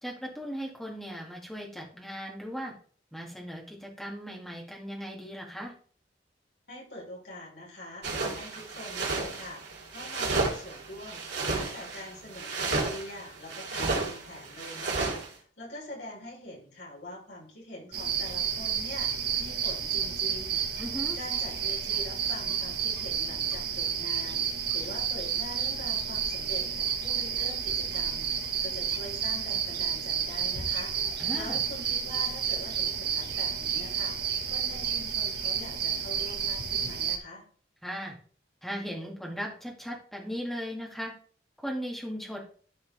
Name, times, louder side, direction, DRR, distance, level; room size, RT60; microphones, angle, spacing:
voice 1, 0.0-2.7 3.1-5.7 20.8-21.2 31.2-31.6 37.8-38.1 38.6-41.1 41.6-42.4, equal, ahead, -1 dB, 2.1 m, -37 dB
voice 2, 6.7-9.6 9.9-20.7 21.1-24.4 24.7-37.4, left 1 dB, 70° left, -4 dB, 4.5 m, -44 dB
sound 1, 8.0-15.3, right 3 dB, 85° right, 2.8 m, -32 dB
sound 2, 17.9-37.2, right 7 dB, 60° right, 1.6 m, -30 dB
12.5 x 4.4 x 3.4 m, 0.43 s
head